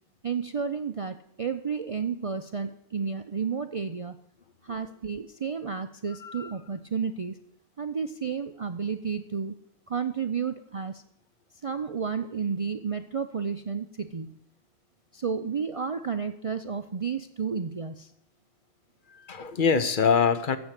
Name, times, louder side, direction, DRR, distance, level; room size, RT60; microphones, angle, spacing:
voice 1, 0.2-4.2 4.6-7.4 7.8-9.6 9.9-11.0 11.6-14.4 15.1-18.1, right 6 dB, 65° right, 8 dB, 0.3 m, -31 dB
voice 2, 6.2-6.5 19.1-20.6, left 6 dB, 45° left, 11 dB, 0.9 m, -24 dB
14.5 x 6.1 x 8.2 m, 0.73 s
omnidirectional pair, 1.3 m